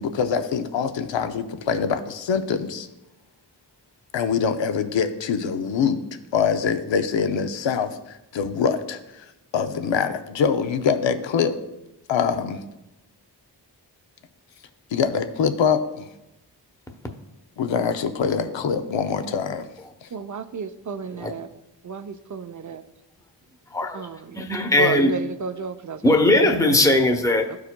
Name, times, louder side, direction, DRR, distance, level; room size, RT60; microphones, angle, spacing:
voice 1, 0.0-2.9 4.1-6.0 6.3-9.0 9.5-11.6 12.1-12.6 14.9-16.1 17.6-19.7 20.0-20.1, left 6 dB, 85° left, 0.6 m, -24 dB
voice 2, 20.1-21.5 21.8-22.8 23.9-24.5 24.8-26.7 27.5-27.6, right 5 dB, 45° right, 0.6 m, -32 dB
voice 3, 23.7-24.1 24.3-25.2 26.0-27.5, left 1 dB, 10° left, 0.8 m, -19 dB
13.0 x 4.8 x 2.2 m
cardioid pair, 50°, 44 cm